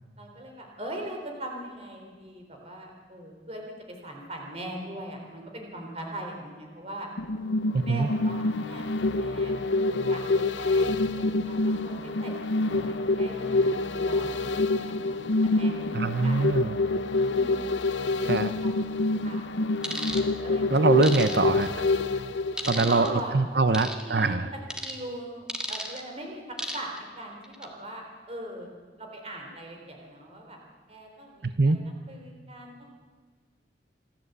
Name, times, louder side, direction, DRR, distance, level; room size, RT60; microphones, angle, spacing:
voice 1, 0.2-3.6 3.9-7.1 7.8-8.9 9.2-17.0 17.2-17.7 18.6-18.8 19.2-19.4 20.1-21.0 22.7-23.4 23.8-24.4 24.8-28.7 29.0-30.6 30.9-32.9, right 1 dB, 35° right, 1 dB, 3.7 m, -41 dB
sound 1, 7.2-23.4 23.8-23.9, left 2 dB, 85° left, 0.9 m, -27 dB
voice 2, 7.7-8.1 15.9-16.8 18.2-18.5 20.7-21.9 22.7-24.5 31.4-31.8, right 3 dB, 60° right, 11 dB, 0.7 m, -24 dB
sound 2, 19.8-20.2 21.0-21.7 22.6-23.1 23.7-24.0 24.7-25.0 25.5-26.0 26.6-27.0 27.4-27.7, equal, 5° right, 1.7 m, -33 dB
26.5 x 13.0 x 8.1 m, 1.5 s
head